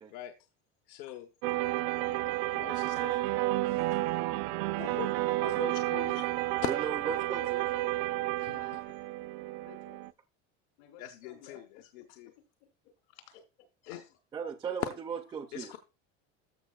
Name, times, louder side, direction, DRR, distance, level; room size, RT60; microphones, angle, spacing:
voice 1, 0.9-1.3 2.5-3.2 4.8-5.1 5.4-6.3 8.4-8.8 11.0-11.6 12.1-12.3 13.9-14.0 15.5-15.8, left 13 dB, 60° left, 6 dB, 0.9 m, -43 dB
sound 1, 1.4-10.1, right 18 dB, 90° right, 0.6 m, -31 dB
voice 2, 2.0-2.4 5.4-5.6 7.1-8.8 9.6-10.1 10.8-11.9 12.4-12.7 13.1-13.4 13.8-14.0, left 7 dB, 85° left, 5 dB, 3.5 m, -54 dB
voice 3, 6.6-7.6 14.3-15.7, right 6 dB, 15° right, 7 dB, 0.3 m, -37 dB
14.0 x 6.3 x 2.3 m, 0.30 s
cardioid pair, 180°, 31 cm